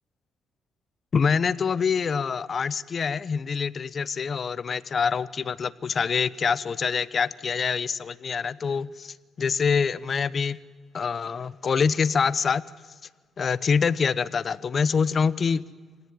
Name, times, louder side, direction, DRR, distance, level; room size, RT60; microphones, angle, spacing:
voice 1, 1.1-10.6 10.9-12.6 13.4-15.6, left 6 dB, 45° left, 18 dB, 0.9 m, -25 dB
26.0 x 18.5 x 9.4 m, 1.5 s
cardioid pair, 95°, 0 cm